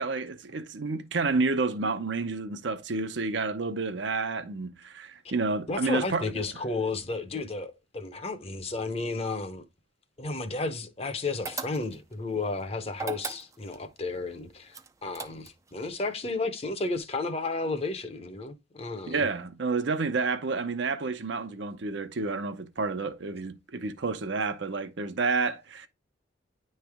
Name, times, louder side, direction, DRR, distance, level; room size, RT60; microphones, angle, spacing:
voice 1, 0.0-6.3 19.1-25.9, right 4 dB, 70° right, 0.7 m, -30 dB
voice 2, 5.7-9.6 10.2-19.2, left 3 dB, 30° left, 0.7 m, -33 dB
sound 1, 11.4-12.1 12.9-13.8 14.7-15.7, right 4 dB, 15° right, 0.4 m, -37 dB
9.8 x 3.3 x 3.4 m
head